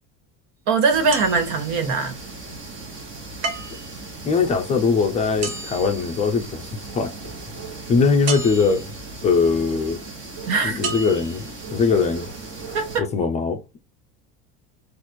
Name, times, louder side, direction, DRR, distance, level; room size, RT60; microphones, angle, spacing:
voice 1, 0.7-2.1 10.5-10.8 12.7-13.1, right 4 dB, 65° right, 1.6 m, -21 dB
sound 1, 0.9-13.0, right 3 dB, 35° right, 1.2 m, -37 dB
sound 2, 1.1-2.1 3.4-4.0 5.4-6.7 8.3-9.0 10.8-11.5 12.1-12.2, right 4 dB, 80° right, 1.1 m, -33 dB
voice 2, 4.2-6.7 6.9-7.1 7.9-8.9 9.2-10.0 10.6-12.3 13.0-13.8, left 5 dB, 20° left, 0.4 m, -21 dB
4.2 x 2.5 x 4.3 m
cardioid pair, 175°, 33 cm